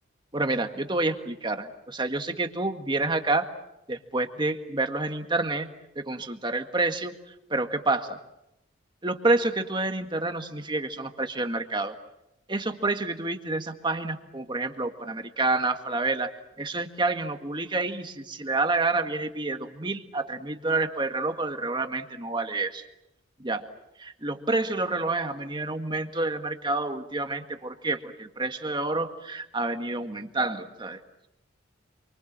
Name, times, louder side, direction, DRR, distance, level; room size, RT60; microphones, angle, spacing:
voice 1, 0.3-3.5 3.9-5.7 5.9-7.1 7.5-8.2 9.0-11.9 12.5-22.8 23.4-23.7 24.0-31.0, right 2 dB, 25° right, 6 dB, 1.8 m, -28 dB
28.0 x 24.5 x 7.5 m, 0.88 s
head